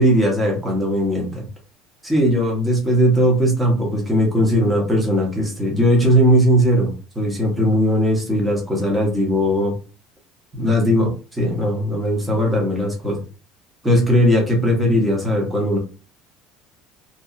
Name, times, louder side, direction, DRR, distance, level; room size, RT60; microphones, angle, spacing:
voice 1, 0.0-1.5 2.0-9.7 10.5-13.2 13.8-15.8, equal, 10° right, -1 dB, 0.7 m, -18 dB
2.7 x 2.2 x 2.4 m, 0.34 s
cardioid pair, 175°, 0 cm